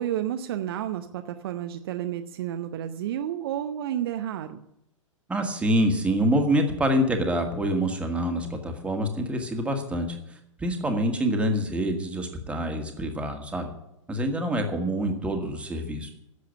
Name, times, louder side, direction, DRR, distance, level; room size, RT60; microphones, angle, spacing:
voice 1, 0.0-4.6, right 11 dB, 45° right, 7 dB, 0.8 m, -31 dB
voice 2, 5.3-10.2 10.6-13.7 14.1-16.1, equal, 5° right, 3 dB, 1.9 m, -26 dB
11.5 x 7.6 x 9.8 m, 0.82 s
figure-of-eight pair, 105°, 17 cm